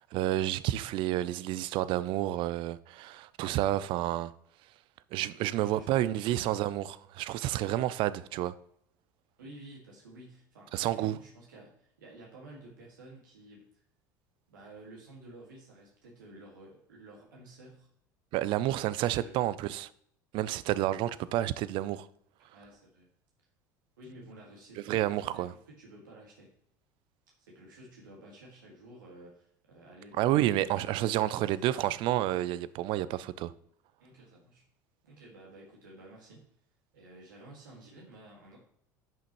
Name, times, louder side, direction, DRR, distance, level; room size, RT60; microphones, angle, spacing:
voice 1, 0.1-4.3 5.1-8.5 10.7-11.2 18.3-19.9 20.3-22.1 24.9-25.5 30.2-33.5, right 14 dB, 55° right, 0.5 m, -30 dB
voice 2, 5.3-6.1 7.7-7.9 9.4-13.8 14.5-17.9 18.9-19.4 22.5-23.1 24.0-26.5 27.4-30.7 31.1-31.7 34.0-34.6 35.0-36.4 36.9-38.6, right 1 dB, 80° right, 2.0 m, -52 dB
10.5 x 6.2 x 3.1 m
hypercardioid pair, 70°, 10 cm